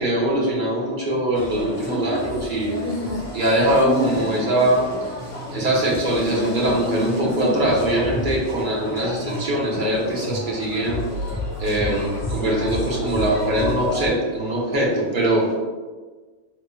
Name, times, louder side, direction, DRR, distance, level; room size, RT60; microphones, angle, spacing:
voice 1, 0.0-2.7 3.3-4.9 5.5-11.0 11.6-15.5, right 1 dB, 50° right, -3 dB, 0.9 m, -22 dB
sound 1, 1.3-14.1, left 1 dB, 45° left, 1.1 m, -29 dB
3.8 x 3.1 x 2.2 m, 1.3 s
omnidirectional pair, 1.2 m